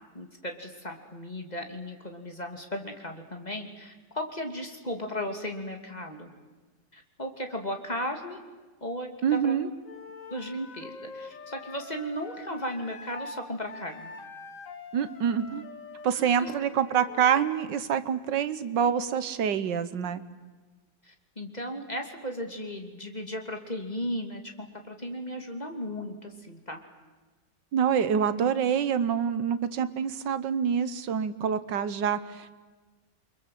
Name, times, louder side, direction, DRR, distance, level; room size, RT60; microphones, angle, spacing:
voice 1, 0.1-6.3 6.9-8.4 8.8-9.6 10.3-14.1 16.2-16.5 21.0-26.8 28.4-28.5, equal, 25° left, 4 dB, 2.5 m, -36 dB
voice 2, 9.2-9.7 14.9-15.6 16.0-20.2 27.7-32.5, right 8 dB, 80° right, 13 dB, 1.7 m, -26 dB
Wind instrument woodwind instrument, 9.8-13.4 13.7-17.5, left 4 dB, 50° left, 1.8 m, -45 dB
29.0 x 24.0 x 7.6 m, 1.3 s
omnidirectional pair, 1.9 m